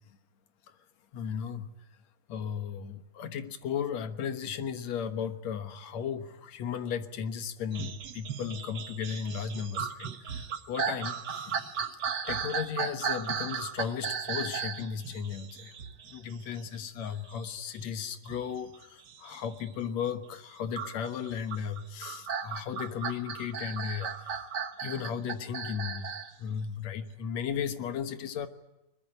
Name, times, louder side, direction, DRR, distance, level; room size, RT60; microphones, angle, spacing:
voice 1, 1.1-1.7 2.3-11.6 12.3-15.7 16.1-24.1 24.8-26.1 26.4-28.5, left 7 dB, 70° left, 10 dB, 2.5 m, -35 dB
sound 1, 7.7-20.1 20.7-26.3 26.8-26.9, right 7 dB, 50° right, 1.3 m, -36 dB
21.5 x 21.0 x 9.8 m, 0.94 s
omnidirectional pair, 3.3 m